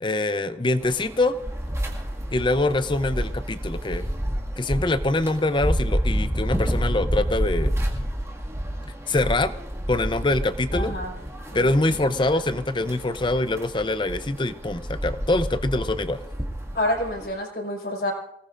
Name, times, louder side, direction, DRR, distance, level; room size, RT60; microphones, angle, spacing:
voice 1, 0.0-1.4 2.3-4.1 4.6-7.7 9.1-9.5 9.9-10.9 11.5-16.2, left 2 dB, 25° left, 12 dB, 0.6 m, -24 dB
sound 1, 0.8-17.3, equal, 15° right, 2.0 m, -29 dB
voice 2, 10.7-11.1 11.5-11.6 16.7-18.1, left 1 dB, 60° left, 0 dB, 5.0 m, -28 dB
26.5 x 19.0 x 2.6 m, 0.79 s
head